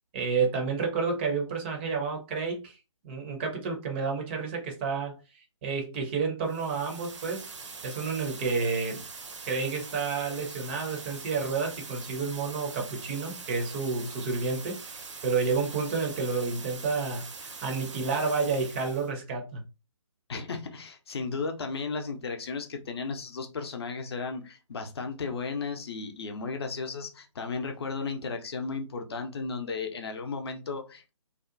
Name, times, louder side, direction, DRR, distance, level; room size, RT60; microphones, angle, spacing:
voice 1, 0.1-2.8 3.0-7.5 7.8-9.0 9.5-19.6, right 4 dB, 20° right, 2 dB, 0.5 m, -30 dB
sound 1, 6.4-19.1, right 4 dB, 65° right, 0.6 m, -43 dB
voice 2, 20.3-31.1, left 4 dB, 50° left, 5 dB, 0.6 m, -34 dB
2.7 x 2.1 x 2.5 m, 0.29 s
figure-of-eight pair, 140°, 17 cm